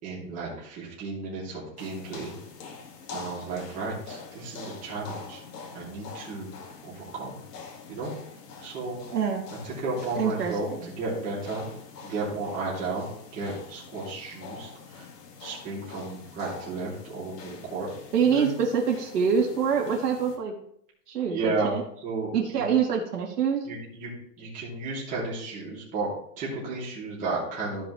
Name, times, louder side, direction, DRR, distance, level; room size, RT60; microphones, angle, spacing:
voice 1, 0.0-2.3 3.1-5.4 5.7-6.5 6.8-7.4 7.9-8.1 8.6-9.0 9.6-11.7 12.0-13.1 13.3-15.1 15.4-17.9 18.2-18.6 21.3-21.7 22.0-22.7 23.6-24.1 24.4-26.1 26.4-27.9, right 3 dB, 15° right, -7 dB, 2.9 m, -33 dB
sound 1, 1.8-20.4, left 5 dB, 80° left, 2.4 m, -45 dB
voice 2, 9.1-9.4 10.1-10.9 18.1-20.5 21.1-21.8 22.3-23.7, right 6 dB, 75° right, -1 dB, 2.8 m, -25 dB
15.0 x 5.3 x 3.3 m, 0.68 s
hypercardioid pair, 170°, 47 cm